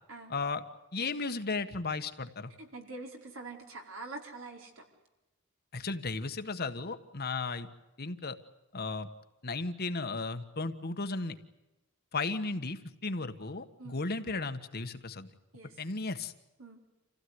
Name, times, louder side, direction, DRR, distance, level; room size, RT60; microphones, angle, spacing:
voice 1, 0.3-0.6 0.9-2.5 5.7-7.7 8.0-8.4 8.7-9.1 9.4-11.3 12.1-15.3 15.8-16.3, left 3 dB, 50° left, 8 dB, 1.5 m, -35 dB
voice 2, 2.6-4.8 13.8-14.0 15.5-15.8 16.6-16.8, right 3 dB, 70° right, 2 dB, 4.8 m, -45 dB
27.5 x 16.5 x 9.7 m, 1.0 s
head